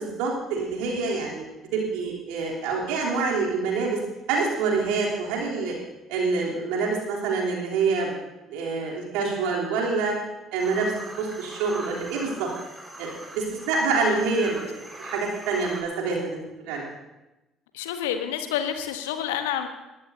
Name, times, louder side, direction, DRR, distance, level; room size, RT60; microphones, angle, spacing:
voice 1, 0.0-1.4 1.7-4.0 4.3-5.7 6.1-8.1 8.5-10.1 10.5-12.5 13.0-16.8, right 4 dB, 65° right, -3 dB, 3.3 m, -26 dB
sound 1, 10.6-15.8, right 1 dB, 15° right, 4.5 m, -42 dB
voice 2, 14.0-14.6 17.7-19.7, left 9 dB, 75° left, 8 dB, 1.1 m, -29 dB
21.0 x 14.5 x 2.7 m, 1.0 s
figure-of-eight pair, 50°, 0 cm